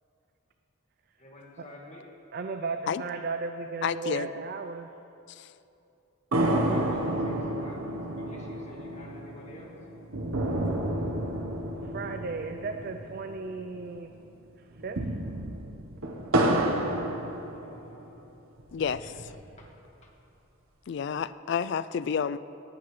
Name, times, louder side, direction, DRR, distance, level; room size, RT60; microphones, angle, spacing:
voice 1, 1.2-2.1 6.6-9.7 17.5-18.3 18.5-18.6 19.0-19.1 19.6-19.7 20.0-20.1, left 1 dB, 35° left, -1 dB, 1.7 m, -50 dB
voice 2, 2.3-4.9 11.8-14.1 14.8-15.1, right 4 dB, 45° right, 7 dB, 0.4 m, -35 dB
voice 3, 3.8-4.3 5.3-5.5 18.7-19.0 20.9-22.4, left 7 dB, 55° left, 15 dB, 0.3 m, -30 dB
sound 1, 6.3-13.9 14.2-14.3 14.7-18.1 18.6-19.6, right 1 dB, 80° right, 1.1 m, -30 dB
18.5 x 11.5 x 3.2 m, 2.8 s
head